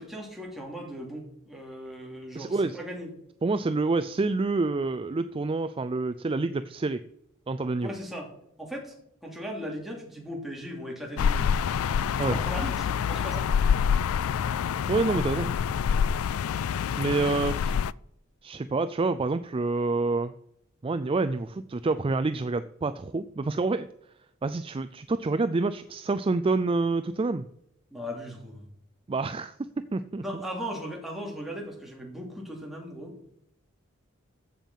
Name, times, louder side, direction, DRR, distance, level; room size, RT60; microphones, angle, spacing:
voice 1, 0.0-3.1 7.8-8.3 8.6-8.9 9.2-11.5 12.3-13.5 17.1-17.4 27.9-28.7 30.2-33.2, equal, ahead, -2 dB, 2.9 m, -38 dB
voice 2, 2.3-2.8 3.4-7.0 7.5-7.9 12.2-12.4 14.9-15.5 16.9-17.8 18.4-20.3 20.8-23.9 24.4-27.5 29.1-29.5 29.9-30.4, right 3 dB, 25° right, 11 dB, 0.4 m, -27 dB
sound 1, 11.2-17.9, left 7 dB, 85° left, 0.3 m, -26 dB
14.5 x 7.3 x 5.6 m, 0.76 s
head